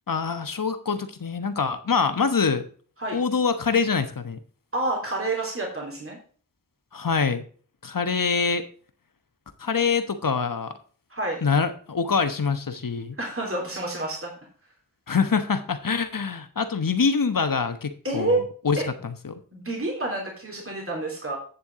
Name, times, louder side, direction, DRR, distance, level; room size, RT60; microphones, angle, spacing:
voice 1, 0.1-2.7 3.1-4.4 6.9-7.4 7.8-8.6 9.6-10.7 11.4-13.2 15.1-18.8 19.0-19.4, left 5 dB, 70° left, 9 dB, 1.2 m, -25 dB
voice 2, 4.7-6.2 11.1-11.4 13.2-14.3 18.0-18.4 18.8-18.9 19.5-21.4, right 2 dB, 40° right, -1 dB, 3.2 m, -28 dB
9.5 x 7.1 x 3.8 m, 0.42 s
wide cardioid pair, 45°, 34 cm